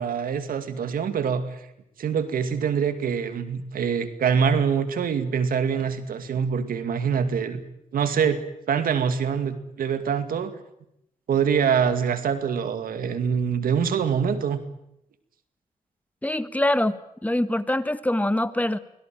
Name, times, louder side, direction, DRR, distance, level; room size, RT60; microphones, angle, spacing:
voice 1, 0.0-1.6 2.0-7.6 7.9-8.4 8.7-10.5 11.3-14.6, right 7 dB, 85° right, 11 dB, 2.2 m, -24 dB
voice 2, 16.2-18.8, left 1 dB, 10° left, 13 dB, 1.5 m, -24 dB
24.5 x 17.5 x 9.1 m, 0.79 s
cardioid pair, 70°, 14 cm